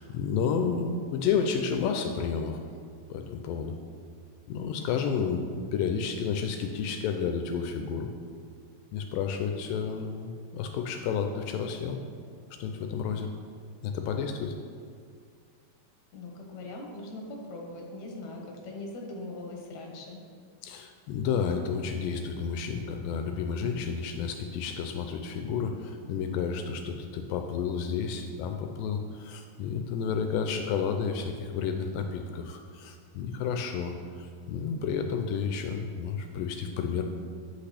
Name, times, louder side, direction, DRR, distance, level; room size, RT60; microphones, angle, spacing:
voice 1, 0.0-2.6 3.1-3.7 4.5-8.1 8.9-12.0 12.6-13.3 13.8-14.5 20.6-37.0, left 6 dB, 80° left, 5 dB, 2.1 m, -31 dB
voice 2, 16.1-20.2, left 2 dB, 60° left, 0 dB, 2.2 m, -41 dB
8.3 x 8.1 x 3.4 m, 2.2 s
omnidirectional pair, 4.2 m